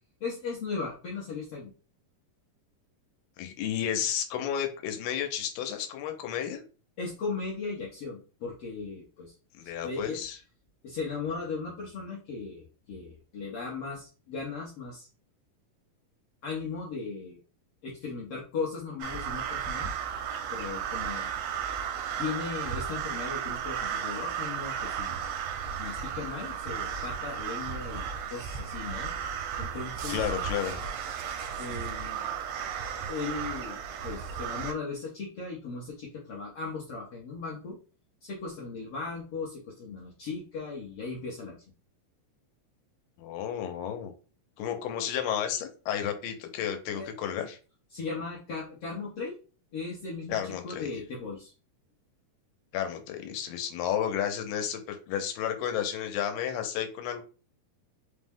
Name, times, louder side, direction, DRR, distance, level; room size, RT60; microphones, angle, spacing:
voice 1, 0.2-1.7 7.0-9.3 9.6-10.2 10.8-15.1 16.4-17.4 17.8-19.9 20.5-21.3 22.2-25.2 25.8-29.1 29.6-30.3 31.6-32.3 33.1-37.8 38.2-41.5 46.9-47.1 47.9-49.4 49.7-51.5, left 4 dB, 75° left, -4 dB, 1.4 m, -37 dB
voice 2, 3.4-6.6 9.6-10.4 30.1-30.8 43.2-44.1 44.6-47.6 50.3-50.9 52.7-57.2, left 9 dB, 90° left, 5 dB, 2.5 m, -32 dB
sound 1, 19.0-34.7, right 8 dB, 85° right, 2.2 m, -34 dB
5.5 x 2.1 x 3.5 m, 0.36 s
omnidirectional pair, 3.9 m